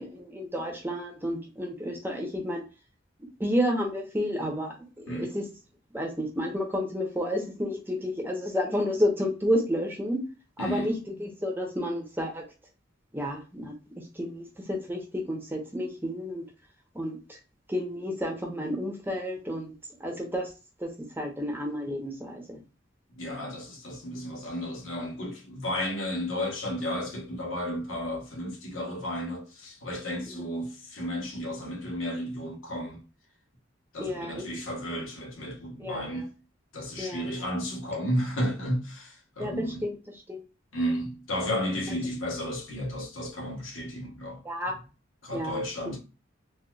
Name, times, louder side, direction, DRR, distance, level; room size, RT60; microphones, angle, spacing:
voice 1, 0.0-2.6 3.4-5.4 5.9-10.2 10.6-10.9 11.2-12.4 13.1-16.4 16.9-17.4 17.7-19.8 20.0-20.5 20.8-20.9 21.2-22.6 30.4-30.5 34.0-34.4 35.8-36.2 37.0-37.2 39.4-39.9 40.3-40.4 44.4-44.7 45.3-45.6, equal, 10° right, 0.9 m, -31 dB
voice 2, 10.6-10.9 23.1-33.0 33.9-36.3 36.7-39.8 40.7-44.4 45.2-46.0, equal, 85° left, 1.3 m, -33 dB
4.0 x 2.5 x 2.3 m
head